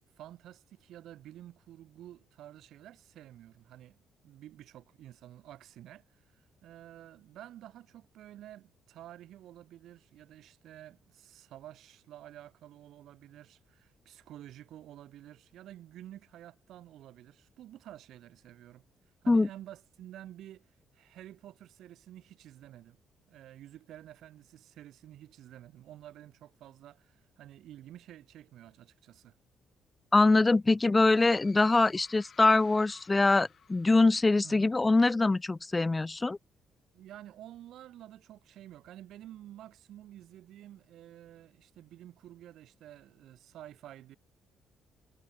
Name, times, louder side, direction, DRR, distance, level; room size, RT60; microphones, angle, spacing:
voice 1, 0.2-18.8 19.2-23.0 23.3-29.4 34.4-34.7 36.9-44.2, right 12 dB, 80° right, 2.4 m, -51 dB
voice 2, 30.1-36.4, left 3 dB, 20° left, 0.3 m, -24 dB
sound 1, 31.1-34.8, left 7 dB, 55° left, 4.6 m, -58 dB
cardioid pair, 90°, 0 cm